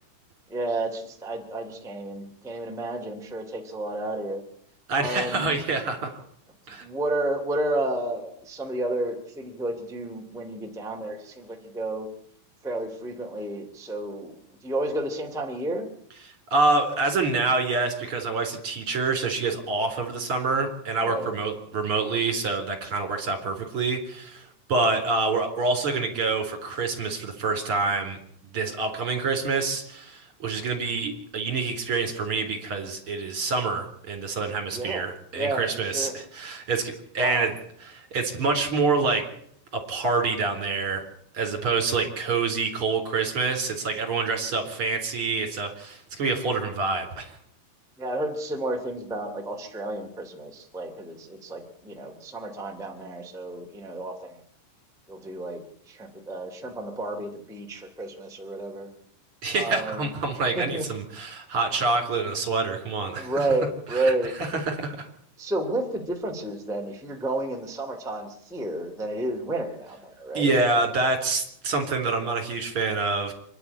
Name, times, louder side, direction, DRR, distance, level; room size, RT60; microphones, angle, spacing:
voice 1, 0.5-4.4 4.9-5.5 6.8-12.1 12.6-15.9 21.0-21.3 34.7-35.0 35.3-36.1 37.2-37.5 48.0-54.4 55.1-58.9 59.5-60.1 60.5-60.8 63.1-64.3 65.4-70.5, right 2 dB, ahead, 1 dB, 0.9 m, -31 dB
voice 2, 4.9-6.2 6.7-6.8 16.5-28.2 28.5-37.5 37.9-39.3 39.7-41.0 41.3-47.4 59.4-63.5 63.9-64.1 64.6-65.1 70.3-73.3, right 3 dB, 30° right, 4 dB, 3.9 m, -26 dB
26.5 x 11.0 x 9.9 m, 0.69 s
omnidirectional pair, 5.9 m